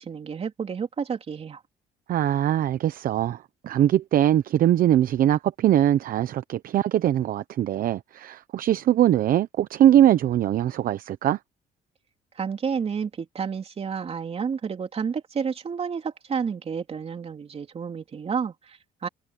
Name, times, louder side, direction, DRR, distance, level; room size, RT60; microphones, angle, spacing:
voice 1, 0.0-1.6 12.4-19.1, right 6 dB, 35° right, 3.6 m, -30 dB
voice 2, 2.1-11.4, right 11 dB, 55° right, 0.8 m, -21 dB
cardioid pair, 110°, 17 cm